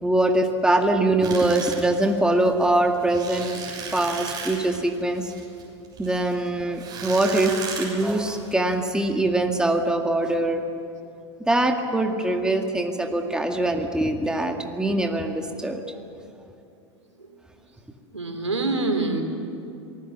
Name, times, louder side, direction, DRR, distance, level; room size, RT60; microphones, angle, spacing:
voice 1, 0.0-3.6 3.9-5.3 6.0-10.6 11.4-15.8, right 1 dB, 5° right, 4 dB, 2.0 m, -23 dB
sound 1, 1.2-8.8, right 5 dB, 25° right, 7.1 m, -36 dB
voice 2, 18.1-19.2, right 3 dB, 90° right, 5 dB, 3.1 m, -25 dB
26.0 x 20.0 x 7.4 m, 2.7 s
figure-of-eight pair, 90°, 15 cm